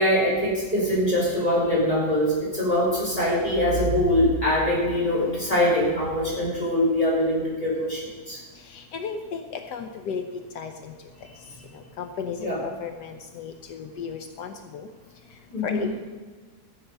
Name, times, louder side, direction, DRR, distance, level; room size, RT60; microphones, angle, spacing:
voice 1, 0.0-8.4 11.4-11.5 12.4-12.6 15.5-15.9, left 1 dB, 20° left, -6 dB, 5.1 m, -23 dB
voice 2, 8.7-9.4 9.7-10.2 10.5-10.9 12.0-14.9 15.6-16.0, left 6 dB, 85° left, 7 dB, 1.4 m, -34 dB
15.0 x 7.9 x 5.4 m, 1.4 s
omnidirectional pair, 1.8 m